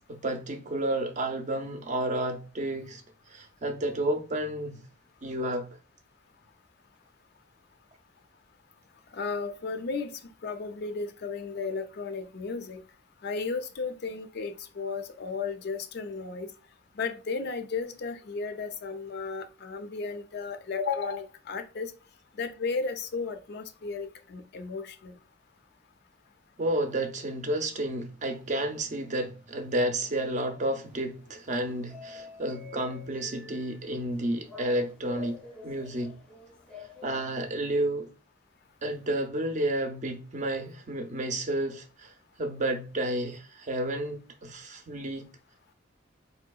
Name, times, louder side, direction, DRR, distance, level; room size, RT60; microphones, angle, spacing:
voice 1, 0.1-3.0 3.3-4.8 5.2-5.7 26.6-36.2 37.0-38.1 38.8-42.1 42.4-45.3, right 1 dB, 40° right, 0.5 m, -31 dB
voice 2, 9.1-12.8 13.2-16.5 17.0-21.9 22.4-25.2, left 4 dB, 60° left, 0.4 m, -34 dB
sound 1, 30.8-37.8, left 5 dB, 5° left, 0.6 m, -48 dB
4.1 x 2.7 x 2.3 m
head